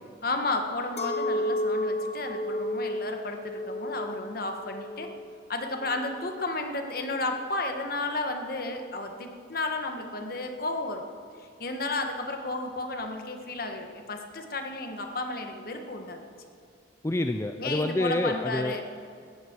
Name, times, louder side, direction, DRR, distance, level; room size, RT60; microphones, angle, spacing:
voice 1, 0.2-5.1 5.5-11.0 11.4-16.2 17.6-18.8, left 2 dB, 50° left, 4 dB, 1.5 m, -33 dB
Chink clink, 1.0-6.4, left 1 dB, 35° left, 1.2 m, -32 dB
voice 2, 17.0-18.8, left 1 dB, 15° left, 7 dB, 0.4 m, -28 dB
17.5 x 14.0 x 4.7 m, 2.3 s
head